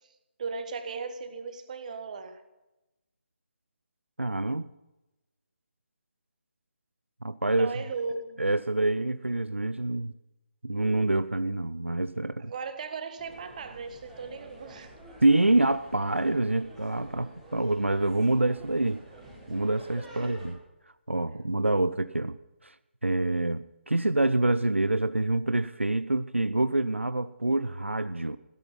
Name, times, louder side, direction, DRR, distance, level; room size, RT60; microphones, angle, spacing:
voice 1, 0.4-2.4 7.6-8.4 12.4-14.9 20.2-20.5, right 4 dB, 40° right, 1.6 m, -37 dB
voice 2, 4.2-4.7 7.2-7.8 8.4-10.1 10.6-12.5 15.2-19.0 19.5-20.6 21.1-22.4 22.6-22.7 23.0-28.4, right 2 dB, 85° right, 0.6 m, -26 dB
sound 1, 13.2-20.5, right 1 dB, ahead, 5.7 m, -49 dB
16.0 x 12.5 x 5.7 m
figure-of-eight pair, 145°, 6 cm